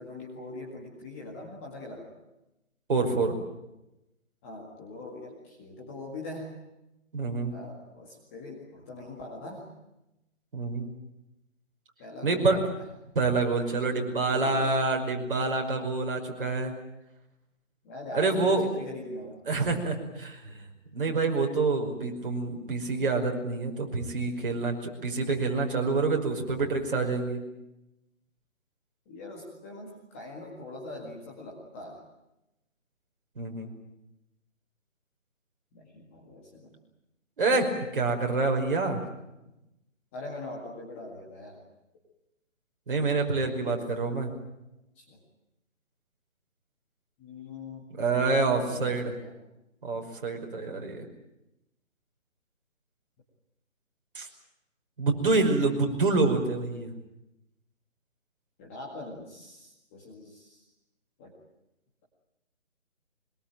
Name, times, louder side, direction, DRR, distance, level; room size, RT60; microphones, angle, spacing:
voice 1, 0.0-2.1 4.4-6.5 7.5-9.7 12.0-12.8 13.9-14.8 17.8-19.4 29.1-32.0 35.7-36.8 40.1-41.6 43.6-43.8 45.0-45.2 47.2-49.3 58.6-60.6 61.2-61.4, left 2 dB, 10° left, -2 dB, 2.0 m, -42 dB
voice 2, 2.9-3.4 7.1-7.5 10.5-10.9 12.2-12.6 13.2-16.7 18.1-18.7 19.5-20.5 20.9-24.8 25.0-27.4 33.4-33.7 37.4-39.0 42.9-44.3 48.0-49.1 49.8-51.1 54.2-54.3 55.0-56.9, right 3 dB, 40° right, 2 dB, 5.5 m, -27 dB
24.0 x 22.0 x 9.0 m, 0.91 s
hypercardioid pair, 175°, 39 cm